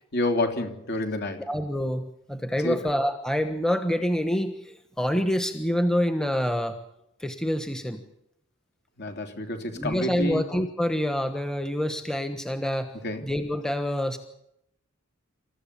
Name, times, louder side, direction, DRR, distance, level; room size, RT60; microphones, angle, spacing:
voice 1, 0.1-1.4 2.6-2.9 9.0-10.4 13.0-13.3, left 1 dB, 50° left, 5 dB, 3.4 m, -29 dB
voice 2, 1.4-6.8 7.2-8.0 9.7-12.9 13.2-14.2, equal, 5° left, 7 dB, 1.3 m, -27 dB
27.5 x 14.5 x 8.6 m, 0.79 s
head